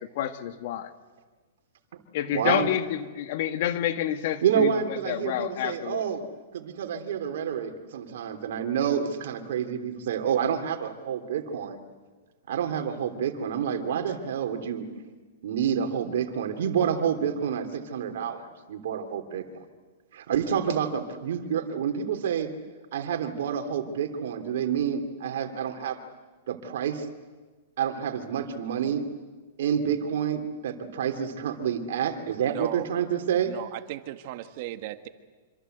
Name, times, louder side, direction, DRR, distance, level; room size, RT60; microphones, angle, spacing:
voice 1, 0.2-0.9 2.1-4.7 5.1-6.0, left 11 dB, 55° left, 9 dB, 1.8 m, -28 dB
voice 2, 2.3-2.7 4.4-6.2 6.5-11.8 12.5-14.8 15.4-19.4 20.1-22.5 22.9-26.0 26.5-27.0 27.8-29.0 29.6-33.5, right 8 dB, 70° right, 6 dB, 3.3 m, -28 dB
voice 3, 32.5-32.9 33.4-35.1, right 15 dB, 50° right, 9 dB, 1.7 m, -36 dB
26.5 x 25.5 x 8.1 m, 1.4 s
hypercardioid pair, 145°, 0 cm